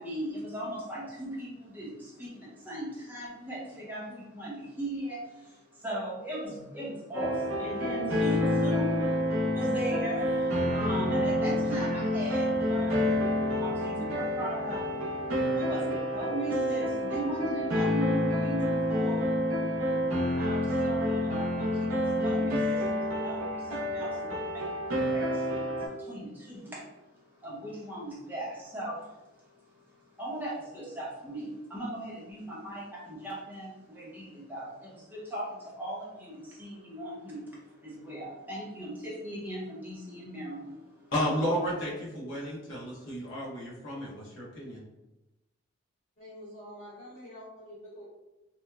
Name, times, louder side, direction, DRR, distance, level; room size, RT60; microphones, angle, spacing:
voice 1, 0.0-9.0 9.5-13.0 13.6-14.9 15.5-19.3 20.4-26.9 27.4-29.5 30.2-40.8, right 1 dB, 10° right, -6 dB, 0.6 m, -38 dB
sound 1, 7.1-25.9, equal, 80° right, 0.6 m, -28 dB
voice 2, 41.1-44.8, equal, 65° left, -5 dB, 0.8 m, -32 dB
voice 3, 46.2-48.0, equal, 30° left, -12 dB, 1.2 m, -46 dB
2.8 x 2.1 x 2.2 m, 0.98 s
head